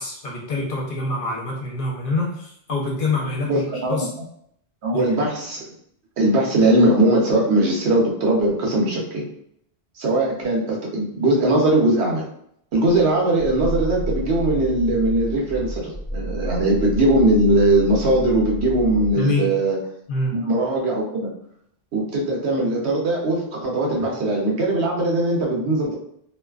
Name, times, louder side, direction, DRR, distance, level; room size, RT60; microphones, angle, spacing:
voice 1, 0.0-3.6 3.9-4.1 4.9-5.1 19.2-19.5 20.1-20.4, left 2 dB, 60° left, -3 dB, 0.9 m, -25 dB
voice 2, 3.4-4.1 4.8-5.6 6.2-9.2 10.0-12.3 12.7-19.8 20.3-21.3 21.9-26.0, right 1 dB, 85° right, -2 dB, 1.0 m, -20 dB
Growling, 12.9-19.2, equal, 55° right, 0.9 m, -30 dB
2.5 x 2.3 x 2.3 m, 0.70 s
omnidirectional pair, 1.1 m